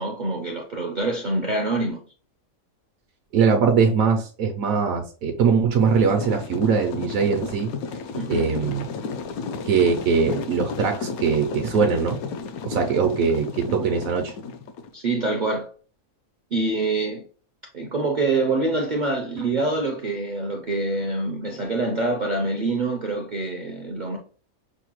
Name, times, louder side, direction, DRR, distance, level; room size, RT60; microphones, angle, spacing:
voice 1, 0.0-2.0 8.1-8.5 14.9-15.7 16.5-17.2 17.7-24.2, right 2 dB, 55° right, 0.5 m, -25 dB
voice 2, 3.3-7.7 8.3-8.9 9.7-12.2 12.6-14.3, right 5 dB, 75° right, 1.0 m, -21 dB
sound 1, 5.8-14.9, left 5 dB, 80° left, 1.0 m, -33 dB
6.3 x 2.2 x 2.9 m
omnidirectional pair, 1.5 m